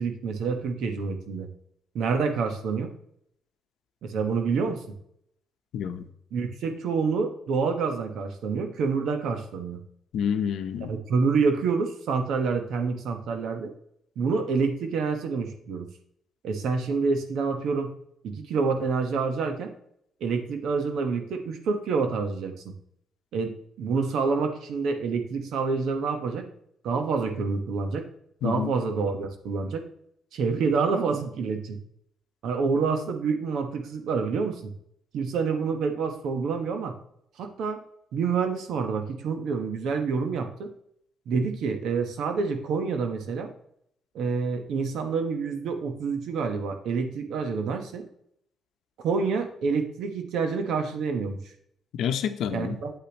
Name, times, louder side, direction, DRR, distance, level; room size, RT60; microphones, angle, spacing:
voice 1, 0.0-1.5 1.9-2.9 4.0-4.9 6.3-9.8 10.9-13.7 14.2-15.9 16.4-17.9 18.2-19.7 20.2-22.7 23.3-26.4 26.8-28.1 28.4-29.8 30.3-31.8 32.4-34.7 35.1-37.0 37.4-37.8 38.1-40.7 41.3-43.5 44.1-48.0 49.0-51.4 52.5-52.9, right 5 dB, 75° right, 6 dB, 1.2 m, -27 dB
voice 2, 5.7-6.1 10.1-10.9 28.4-28.7 51.9-52.8, left 8 dB, 80° left, 9 dB, 0.7 m, -28 dB
8.5 x 8.0 x 3.0 m, 0.72 s
cardioid pair, 90°, 0 cm